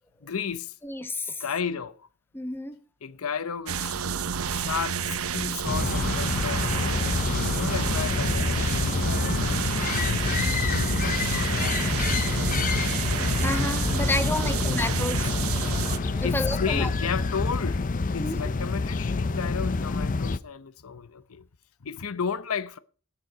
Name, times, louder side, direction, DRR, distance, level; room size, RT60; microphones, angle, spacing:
voice 1, 0.2-0.8 1.4-2.1 3.0-3.9 4.5-11.8 14.4-14.8 15.6-15.8 16.2-17.8 18.1-21.5 21.8-22.8, left 6 dB, 85° left, 0.8 m, -34 dB
voice 2, 0.8-1.4 2.3-2.8 13.4-15.4 16.2-16.9 18.2-18.5, left 2 dB, 10° left, 0.9 m, -30 dB
sound 1, 3.7-16.0, right 7 dB, 80° right, 0.8 m, -30 dB
sound 2, 5.6-20.4, left 3 dB, 40° left, 0.5 m, -27 dB
sound 3, 11.4-16.9, right 1 dB, 5° right, 0.6 m, -35 dB
18.5 x 6.8 x 4.9 m
head